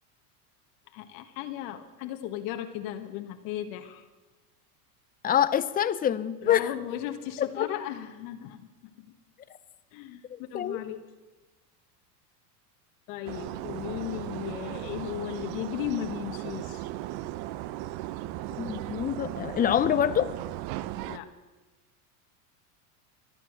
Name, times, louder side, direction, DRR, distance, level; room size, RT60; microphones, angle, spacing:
voice 1, 0.9-4.1 6.4-9.1 9.9-11.0 13.1-16.9 21.0-21.3, left 12 dB, 60° left, 5 dB, 1.5 m, -36 dB
voice 2, 5.2-6.7 7.4-7.7 10.3-10.8 18.6-20.3, left 9 dB, 20° left, 14 dB, 0.6 m, -26 dB
sound 1, 13.3-21.2, right 15 dB, 50° right, 0.7 m, -37 dB
23.5 x 8.6 x 6.1 m, 1.2 s
supercardioid pair, 110°, 46 cm